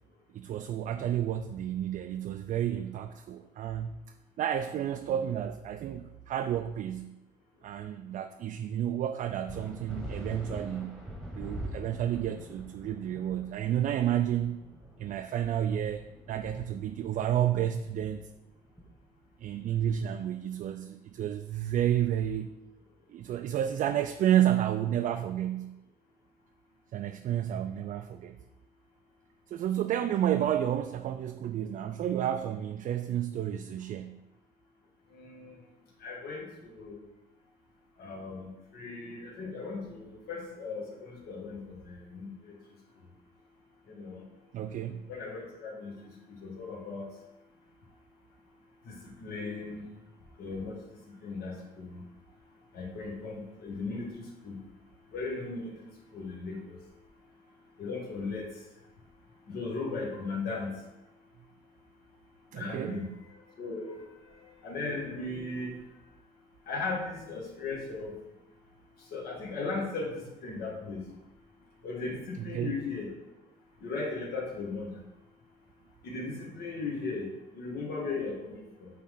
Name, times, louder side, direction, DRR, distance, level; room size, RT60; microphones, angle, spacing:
voice 1, 0.3-4.0 4.4-7.1 7.6-11.0 11.3-14.7 15.0-18.3 19.4-22.5 23.1-25.7 26.9-28.4 29.5-34.2 44.5-45.1 62.5-63.1 72.4-72.7, right 10 dB, 50° right, 7 dB, 0.4 m, -31 dB
sound 1, 9.5-19.4, equal, ahead, 1.4 m, -44 dB
voice 2, 35.1-35.6 36.0-37.0 38.0-42.5 43.9-44.2 45.1-46.1 46.4-47.1 48.9-49.9 50.4-52.0 52.7-54.6 55.1-56.8 57.8-58.5 59.5-60.7 62.5-63.1 63.6-64.0 64.6-65.8 66.7-68.1 69.1-71.0 71.8-73.1 73.8-75.0 76.0-78.9, left 3 dB, 65° left, -1 dB, 1.9 m, -37 dB
8.6 x 3.7 x 3.8 m, 0.96 s
cardioid pair, 110°, 17 cm